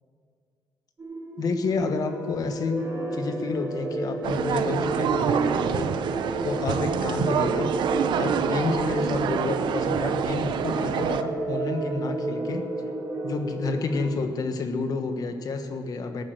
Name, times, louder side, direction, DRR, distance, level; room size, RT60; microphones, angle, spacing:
sound 1, 1.0-14.1, right 2 dB, 30° right, 3.0 m, -32 dB
voice 1, 1.4-5.9 6.4-7.7 8.2-12.6 13.2-16.2, left 4 dB, 55° left, 7 dB, 1.2 m, -29 dB
sound 2, 2.7-6.0, equal, 80° left, 4.5 m, -42 dB
sound 3, 4.2-11.2, right 8 dB, 85° right, 0.7 m, -27 dB
18.5 x 8.7 x 6.5 m, 2.3 s
wide cardioid pair, 145°, 8 cm